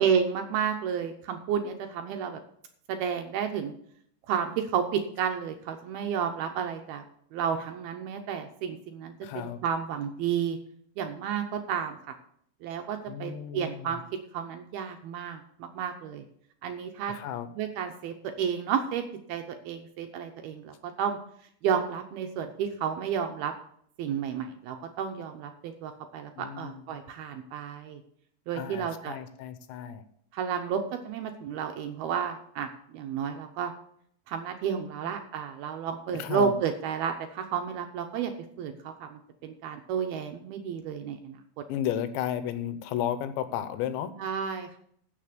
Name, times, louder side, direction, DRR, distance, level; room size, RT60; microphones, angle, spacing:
voice 1, 0.0-2.4 2.9-3.7 4.3-7.0 7.3-10.6 11.0-12.0 12.6-14.0 14.3-16.2 16.6-17.1 17.6-19.0 19.3-21.2 21.6-23.5 24.0-28.0 28.5-29.2 30.3-33.7 34.3-38.3 38.6-41.4 44.2-44.8, right 7 dB, 75° right, 5 dB, 2.4 m, -31 dB
voice 2, 9.2-9.6 13.1-14.0 17.1-17.5 26.4-27.1 28.5-30.0 35.0-35.1 36.1-36.5 41.7-44.1, left 10 dB, 85° left, 11 dB, 3.2 m, -33 dB
15.5 x 6.7 x 5.1 m, 0.65 s
omnidirectional pair, 5.1 m